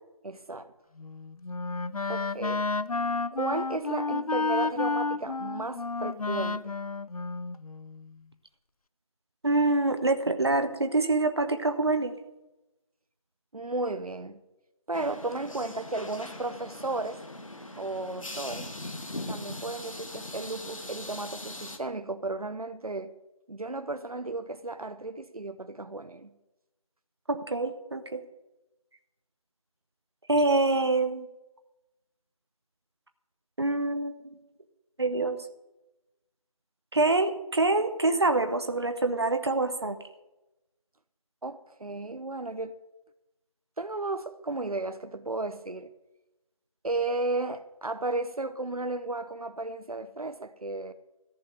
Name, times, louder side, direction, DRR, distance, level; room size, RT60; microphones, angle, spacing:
voice 1, 0.2-0.7 2.1-2.6 3.3-6.8 13.5-14.4 14.9-17.2 17.8-18.7 19.3-23.1 23.5-26.3 41.4-42.7 43.8-45.9 46.8-50.9, right 2 dB, 90° right, 0.8 m, -34 dB
Wind instrument woodwind instrument, 1.0-8.1, left 3 dB, 80° left, 0.5 m, -31 dB
voice 2, 9.4-12.1 27.3-28.2 30.3-31.3 33.6-34.2 35.0-35.4 36.9-40.0, right 2 dB, 45° right, 1.1 m, -25 dB
sound 1, 14.9-21.8, left 2 dB, 65° left, 1.5 m, -41 dB
14.5 x 5.6 x 9.3 m
figure-of-eight pair, 170°, 18 cm